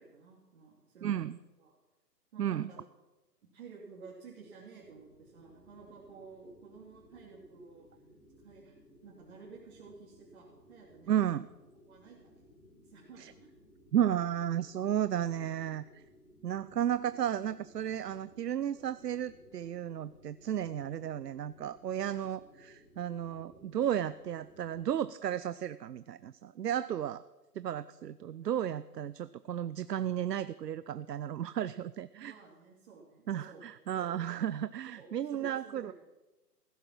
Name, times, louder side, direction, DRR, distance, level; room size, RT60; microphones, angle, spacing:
voice 1, 0.0-1.2 1.6-1.8 2.3-2.8 3.5-7.9 8.4-8.7 9.0-11.1 11.8-12.4 12.8-13.5 32.1-33.6 34.9-35.9, right 5 dB, 40° right, -5 dB, 3.1 m, -53 dB
voice 2, 1.0-1.4 2.4-2.7 11.1-11.5 13.2-13.3 13.9-16.0 16.4-27.2 27.5-32.3 33.3-35.9, right 10 dB, 75° right, 16 dB, 0.6 m, -33 dB
sound 1, 4.8-24.8, left 1 dB, ahead, 6.1 m, -60 dB
15.5 x 12.0 x 6.2 m, 1.1 s
hypercardioid pair, 145°, 49 cm